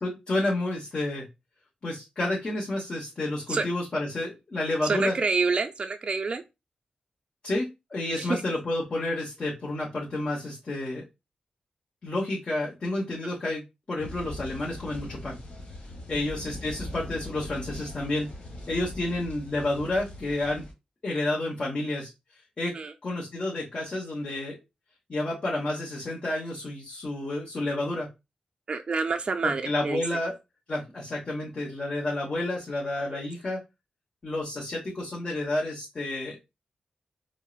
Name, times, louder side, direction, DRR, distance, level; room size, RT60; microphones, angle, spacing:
voice 1, 0.0-1.2 1.8-5.1 7.4-11.0 12.0-13.6 13.9-15.4 16.1-18.3 18.7-20.6 21.0-22.1 22.6-22.7 23.0-24.6 25.1-28.1 29.4-30.3 30.7-33.6 34.2-36.4, left 2 dB, 40° left, 1.0 m, -30 dB
voice 2, 4.8-6.4 8.2-8.4 22.7-22.9 28.7-30.0 33.1-33.2, right 4 dB, 40° right, 0.3 m, -27 dB
sound 1, 14.0-20.7, left 1 dB, 55° left, 1.4 m, -41 dB
4.4 x 2.0 x 2.3 m
wide cardioid pair, 100°, 3 cm